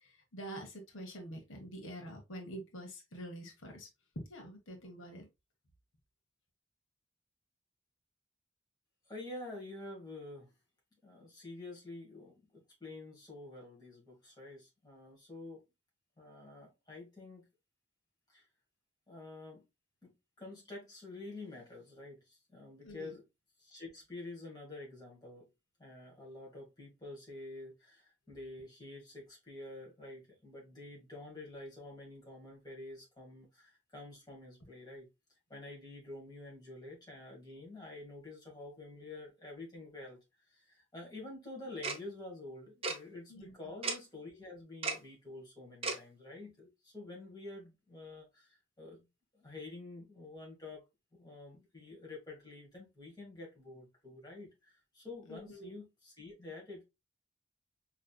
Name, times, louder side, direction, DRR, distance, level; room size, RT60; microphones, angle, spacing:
voice 1, 0.0-3.9 4.1-5.3 22.8-23.1 43.3-43.5 55.3-55.7, right 1 dB, 90° left, 1.1 m, -46 dB
voice 2, 9.1-10.5 11.0-15.6 16.2-17.5 18.3-18.4 19.1-19.6 20.0-23.2 23.6-25.5 25.8-35.1 35.5-40.2 40.5-49.1 49.3-50.8 51.1-56.8, left 2 dB, 20° left, 1.7 m, -48 dB
Tick-tock, 41.8-42.0 42.8-43.0 43.8-44.0 44.8-45.0 45.8-46.0, right 4 dB, 30° right, 0.6 m, -34 dB
4.9 x 3.1 x 2.2 m
head